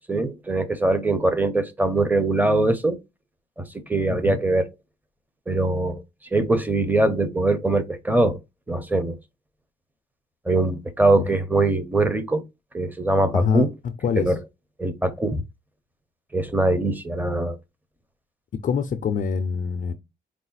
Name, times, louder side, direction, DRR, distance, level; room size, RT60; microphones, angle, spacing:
voice 1, 0.1-3.0 3.6-4.7 5.5-6.0 6.3-8.4 8.7-9.2 10.5-12.4 12.7-13.7 14.2-14.3 14.8-15.4 16.3-17.6, right 2 dB, 10° right, 0.8 m, -22 dB
voice 2, 4.1-4.4 11.2-11.3 13.3-14.4 18.6-19.9, left 6 dB, 45° left, 0.5 m, -25 dB
4.8 x 2.1 x 4.0 m
cardioid pair, 90°, 20 cm